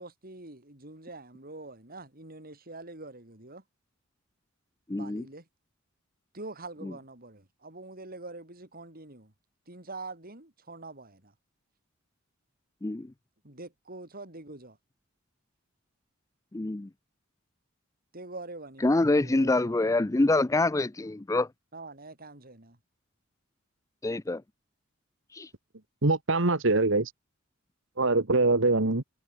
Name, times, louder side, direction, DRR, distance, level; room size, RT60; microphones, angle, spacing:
voice 1, 0.0-3.6 4.9-5.4 6.3-9.3 9.7-11.3 13.4-14.8 18.1-19.7 21.7-22.8, right 2 dB, 45° right, 5.7 m, -44 dB
voice 2, 4.9-5.2 6.8-6.9 12.8-13.1 16.5-16.9 18.8-21.5 24.0-24.4 25.3-25.5, left 2 dB, 15° left, 0.5 m, -26 dB
voice 3, 26.0-27.1 28.0-29.0, right 3 dB, 65° right, 1.7 m, -23 dB
head